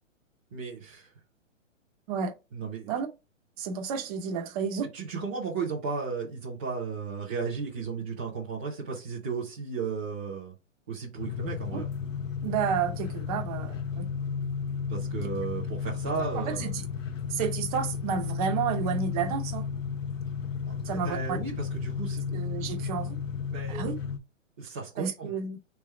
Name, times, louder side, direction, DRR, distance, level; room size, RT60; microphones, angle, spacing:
voice 1, 0.5-1.1 2.5-2.9 4.9-10.5 10.9-11.9 14.9-16.7 20.6-22.9 23.5-23.8 24.6-25.3, right 5 dB, 10° right, 0.3 m, -35 dB
voice 2, 3.6-4.9 11.7-11.8 12.4-14.1 16.2-16.9 17.3-19.7 20.8-21.4 22.3-23.2 23.7-24.0 25.0-25.6, right 7 dB, 30° right, 0.9 m, -31 dB
sound 1, 11.2-24.2, left 6 dB, 80° left, 0.9 m, -33 dB
3.4 x 3.3 x 4.2 m
hypercardioid pair, 140°, 39 cm